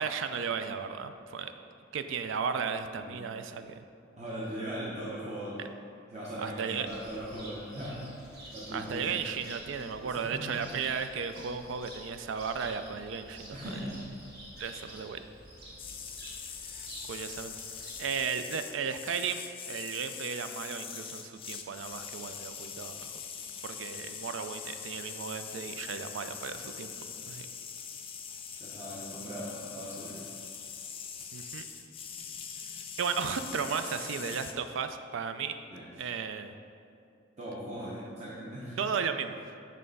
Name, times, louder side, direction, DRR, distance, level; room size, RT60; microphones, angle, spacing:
voice 1, 0.0-1.5 1.9-3.8 5.6-5.7 6.4-6.9 8.7-13.6 14.6-15.2 16.7-17.5 18.0-23.1 23.6-26.9 27.3-27.5 31.3-31.6 33.0-35.5 36.0-36.6 38.8-39.4, right 6 dB, 75° right, 9 dB, 0.4 m, -35 dB
voice 2, 4.2-5.6 6.1-9.2 10.0-10.6 13.5-14.0 28.6-30.2 35.7-36.1 37.4-39.0, equal, 35° right, -7 dB, 0.9 m, -40 dB
Cricket, 6.9-18.2, right 1 dB, 55° right, 1.3 m, -49 dB
sound 1, 15.8-34.5, left 7 dB, 30° left, 0.4 m, -43 dB
7.5 x 3.3 x 5.3 m, 2.5 s
head